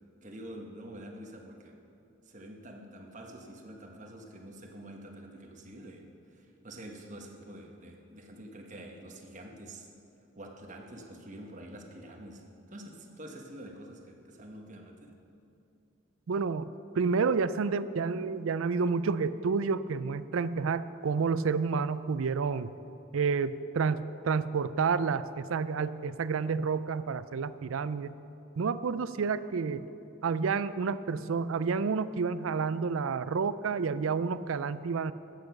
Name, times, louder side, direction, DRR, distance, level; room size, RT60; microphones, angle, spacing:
voice 1, 0.2-1.8 2.2-9.9 10.4-15.1, right 1 dB, 35° right, 2 dB, 1.2 m, -47 dB
voice 2, 16.3-16.7 17.0-22.7 23.1-28.1 28.6-29.8 30.2-35.1, right 5 dB, 75° right, 15 dB, 0.4 m, -29 dB
13.0 x 8.4 x 5.9 m, 2.7 s
head